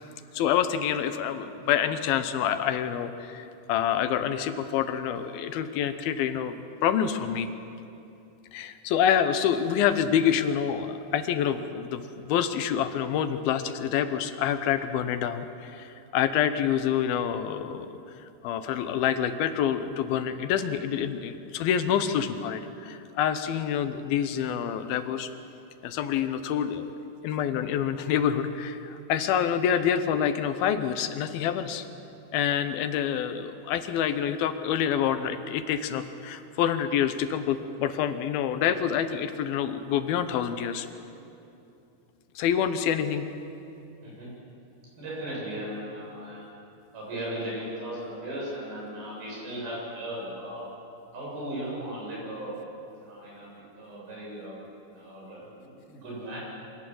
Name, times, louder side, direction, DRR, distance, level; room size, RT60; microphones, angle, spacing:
voice 1, 0.3-7.5 8.5-17.9 18.4-25.3 25.8-26.9 27.2-31.9 32.3-40.9 42.4-43.3, left 9 dB, 80° left, 10 dB, 2.8 m, -27 dB
voice 2, 44.0-44.3 45.0-46.5 46.9-50.6 51.1-52.5 53.0-53.5 53.8-54.6 54.9-56.4, right 1 dB, 75° right, -5 dB, 9.8 m, -37 dB
25.0 x 18.0 x 7.8 m, 2.8 s
omnidirectional pair, 4.3 m